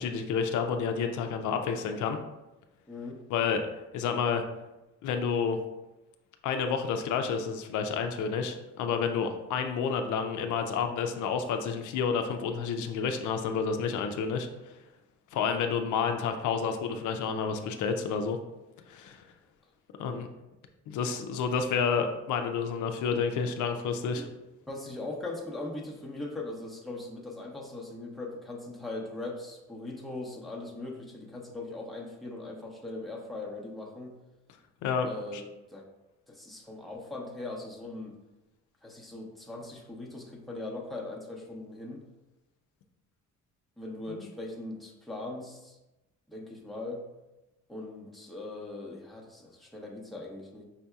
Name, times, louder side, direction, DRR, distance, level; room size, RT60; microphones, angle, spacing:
voice 1, 0.0-2.2 3.3-3.6 3.9-4.4 5.0-5.6 6.4-14.7 15.3-18.4 18.9-19.2 20.0-20.3 20.9-24.3 34.8-35.4 44.1-44.2, left 6 dB, 75° left, 6 dB, 0.5 m, -30 dB
voice 2, 2.9-3.2 15.3-15.6 24.2-24.3 24.7-34.1 35.1-35.4 35.7-35.9 36.3-38.1 38.8-42.0 43.8-45.8 46.3-47.0 47.7-50.6, left 2 dB, ahead, -2 dB, 0.7 m, -40 dB
5.5 x 2.7 x 2.3 m, 0.99 s
cardioid pair, 90°, 30 cm